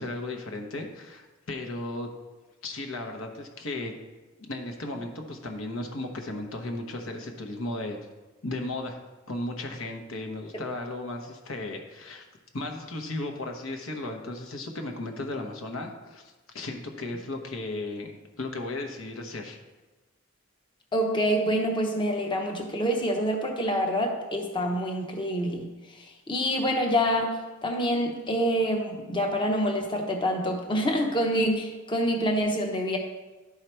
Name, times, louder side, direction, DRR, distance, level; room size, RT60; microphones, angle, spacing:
voice 1, 0.0-2.1 2.6-3.9 4.5-8.0 8.4-9.0 9.3-12.2 12.5-19.6, left 2 dB, 75° left, 4 dB, 1.0 m, -35 dB
voice 2, 20.9-25.7 26.0-33.0, equal, 25° left, 2 dB, 0.8 m, -26 dB
11.0 x 4.8 x 4.5 m, 1.2 s
head